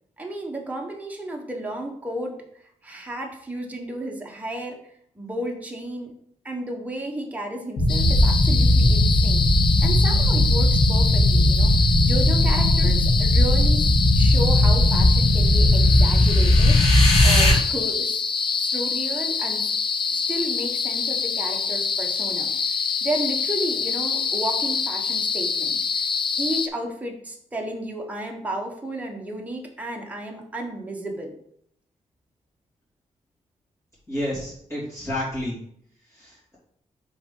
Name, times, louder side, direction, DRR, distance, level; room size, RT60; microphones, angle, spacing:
voice 1, 0.2-2.4 2.8-4.8 5.1-6.1 6.4-9.5 9.8-11.7 12.0-13.9 14.1-16.8 17.2-19.7 20.1-22.5 23.0-26.0 26.4-31.3, right 1 dB, 10° right, 1 dB, 1.1 m, -32 dB
sound 1, 7.8-17.5, left 1 dB, 60° left, 1.8 m, -18 dB
sound 2, 7.9-26.7, left 6 dB, 40° left, 0.4 m, -26 dB
voice 2, 34.1-35.6 36.1-36.6, left 1 dB, 20° left, -10 dB, 3.0 m, -30 dB
5.9 x 4.0 x 5.4 m, 0.69 s
wide cardioid pair, 160°, 13 cm